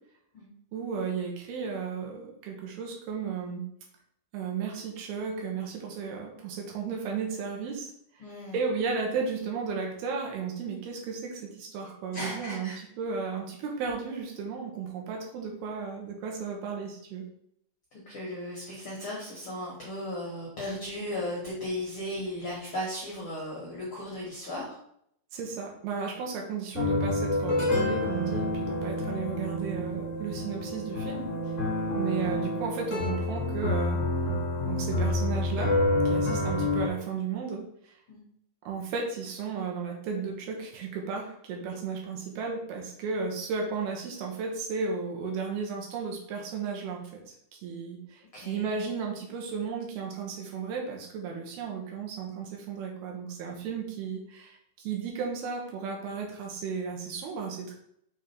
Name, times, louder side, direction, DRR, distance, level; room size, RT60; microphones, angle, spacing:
voice 1, 0.7-3.6 4.3-7.9 8.5-17.3 25.3-31.3 31.9-34.0 34.7-35.7 36.1-38.0 38.7-57.7, right 5 dB, 80° right, 0 dB, 2.9 m, -34 dB
voice 2, 8.2-8.6 12.1-12.8 17.9-24.8 38.1-38.2 48.3-48.7, left 1 dB, 80° left, -4 dB, 1.2 m, -36 dB
sound 1, 26.7-36.9, left 1 dB, 50° left, 1.1 m, -28 dB
6.4 x 3.7 x 4.3 m, 0.71 s
omnidirectional pair, 4.6 m